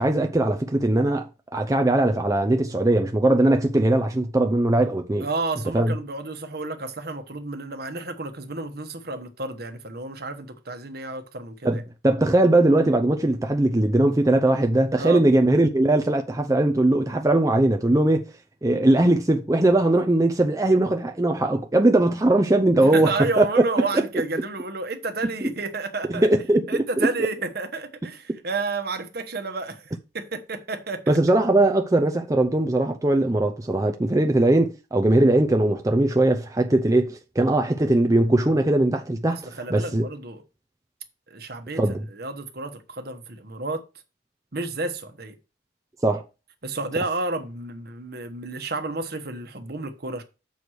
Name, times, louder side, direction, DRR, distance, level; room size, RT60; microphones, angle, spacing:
voice 1, 0.0-5.3 5.7-5.9 11.6-18.3 18.6-23.1 23.4-23.5 23.9-24.1 25.4-25.5 26.1-26.8 28.3-28.4 31.1-40.1 41.8-42.0 46.0-46.2, right 1 dB, 20° right, 0.5 m, -20 dB
voice 2, 5.2-11.8 15.0-15.2 22.7-26.3 26.7-31.2 39.3-40.4 41.3-41.8 42.1-43.8 44.5-45.4 46.6-50.2, right 3 dB, 55° right, 1.2 m, -31 dB
6.9 x 4.7 x 6.3 m
head